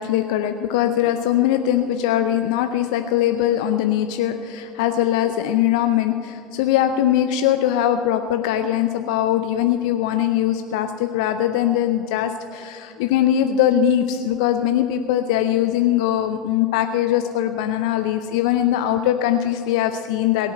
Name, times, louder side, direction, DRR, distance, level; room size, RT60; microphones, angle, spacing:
voice 1, 0.0-20.5, left 11 dB, 70° left, 8 dB, 0.6 m, -21 dB
17.0 x 8.4 x 7.7 m, 2.5 s
hypercardioid pair, 65°, 3 cm